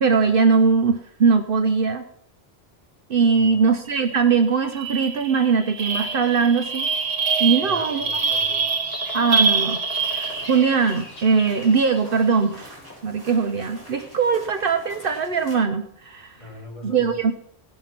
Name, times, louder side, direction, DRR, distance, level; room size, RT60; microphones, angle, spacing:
voice 1, 0.0-2.0 3.1-6.9 7.4-8.1 9.1-9.8 10.1-12.8 13.0-16.4 16.8-17.3, right 5 dB, 60° right, 7 dB, 0.9 m, -20 dB
voice 2, 3.3-3.7 7.5-8.7 16.4-17.1, equal, 30° left, -5 dB, 4.5 m, -41 dB
sound 1, 4.0-4.2 4.5-10.9, right 4 dB, 85° right, 1.4 m, -25 dB
Bird vocalization bird call bird song, 6.0-12.6, left 3 dB, 70° left, 1.7 m, -41 dB
sound 2, 10.0-15.6, equal, 20° right, 4.9 m, -46 dB
16.5 x 5.8 x 5.8 m, 0.69 s
omnidirectional pair, 1.1 m